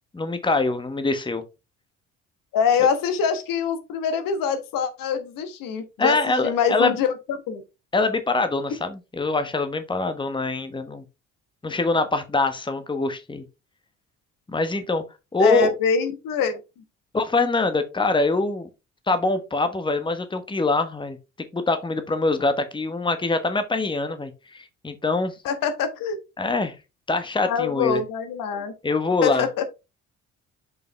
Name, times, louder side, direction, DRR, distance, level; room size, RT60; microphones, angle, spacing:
voice 1, 0.1-1.4 6.0-6.9 7.9-11.0 11.6-13.4 14.5-15.0 15.3-15.7 17.1-18.7 19.1-21.2 21.5-25.3 26.4-26.7 27.1-28.0 28.8-29.5, left 3 dB, 15° left, 1.2 m, -24 dB
voice 2, 2.5-7.1 7.5-7.6 15.4-16.6 25.4-26.2 27.5-28.7 29.2-29.6, left 6 dB, 60° left, 1.3 m, -24 dB
6.6 x 5.3 x 3.3 m
figure-of-eight pair, 50°, 38 cm